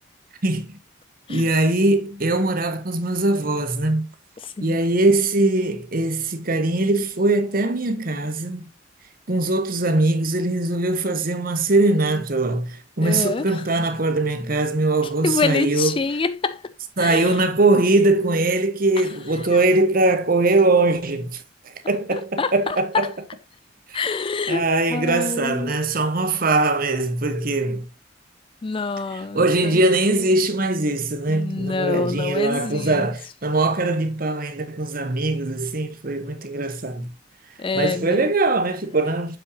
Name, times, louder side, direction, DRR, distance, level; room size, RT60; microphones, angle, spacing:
voice 1, 0.4-0.8 1.3-4.1 4.6-8.7 9.3-15.9 17.0-23.1 23.9-24.0 24.5-27.9 29.1-37.1 37.7-39.4, right 2 dB, 45° right, 1.1 m, -21 dB
voice 2, 4.4-4.8 13.0-13.7 15.2-16.7 17.0-17.4 19.0-19.1 19.5-19.6 22.1-23.1 23.9-25.7 28.6-29.8 31.3-33.1 37.6-38.3, left 4 dB, 25° left, 0.4 m, -26 dB
7.3 x 5.8 x 2.9 m
head